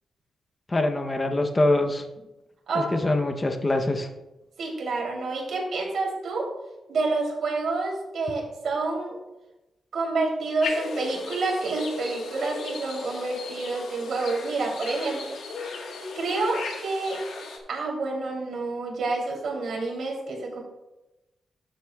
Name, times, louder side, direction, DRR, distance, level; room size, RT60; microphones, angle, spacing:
voice 1, 0.7-2.0 2.8-4.1, left 2 dB, 20° left, 5 dB, 0.8 m, -24 dB
voice 2, 4.6-6.5 6.9-9.2 9.9-15.3 16.1-17.2 17.7-20.6, right 3 dB, 65° right, -1 dB, 3.1 m, -28 dB
sound 1, 10.6-17.6, left 3 dB, 90° left, 1.5 m, -36 dB
13.0 x 7.6 x 2.4 m, 1.0 s
wide cardioid pair, 135°, 0 cm